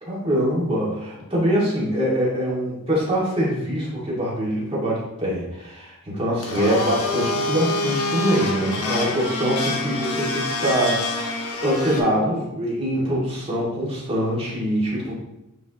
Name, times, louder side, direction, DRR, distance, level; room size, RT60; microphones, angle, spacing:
voice 1, 0.0-11.3 11.6-15.1, equal, 25° right, -6 dB, 2.3 m, -24 dB
Domestic sounds home sounds, 6.4-12.0, left 2 dB, 85° left, 1.2 m, -26 dB
9.3 x 4.7 x 3.0 m, 0.94 s
head